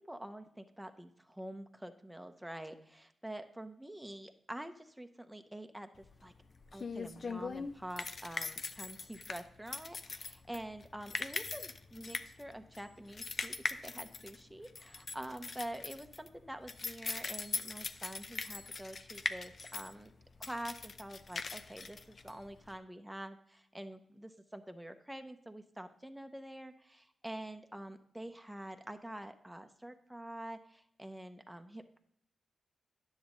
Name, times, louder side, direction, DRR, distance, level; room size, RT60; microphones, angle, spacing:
voice 1, 0.1-6.3 6.7-20.1 20.4-32.0, right 1 dB, 5° right, 7 dB, 0.8 m, -47 dB
sound 1, 6.0-22.8, left 4 dB, 50° left, 0.6 m, -41 dB
10.0 x 7.2 x 3.8 m, 0.70 s
cardioid pair, 70°, 0 cm